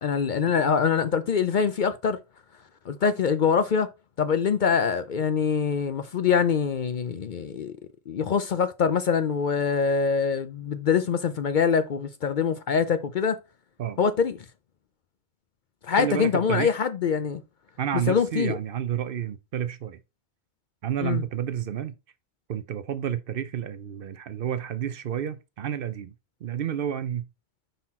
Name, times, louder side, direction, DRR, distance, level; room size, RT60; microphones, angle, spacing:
voice 1, 0.0-2.2 2.9-3.9 4.2-7.8 8.1-13.4 14.0-14.4 15.8-17.4 18.1-18.6 21.0-21.2, left 6 dB, 55° left, 0.6 m, -24 dB
voice 2, 16.0-16.7 17.8-20.0 20.8-21.9 22.5-26.1 26.4-27.2, right 9 dB, 60° right, 0.7 m, -30 dB
5.7 x 4.0 x 4.2 m
omnidirectional pair, 1.1 m